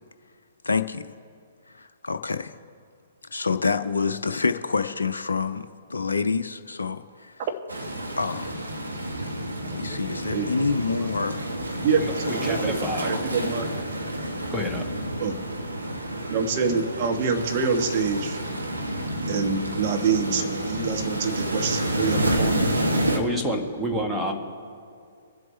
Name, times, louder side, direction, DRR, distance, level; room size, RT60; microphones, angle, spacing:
voice 1, 0.6-1.1 1.8-2.6 3.3-7.5 8.2-8.5 9.7-11.4, left 4 dB, 70° left, 8 dB, 0.5 m, -27 dB
sound 1, 7.7-23.2, right 1 dB, 75° right, 1.4 m, -29 dB
voice 2, 9.6-10.0 12.0-13.1 14.5-14.8 23.1-24.3, equal, 5° right, 0 dB, 1.4 m, -29 dB
voice 3, 11.8-13.7 15.2-15.4 16.3-18.4 19.3-22.8, right 5 dB, 35° right, 4 dB, 1.3 m, -26 dB
22.5 x 7.7 x 3.3 m, 2.3 s
figure-of-eight pair, 120°, 0 cm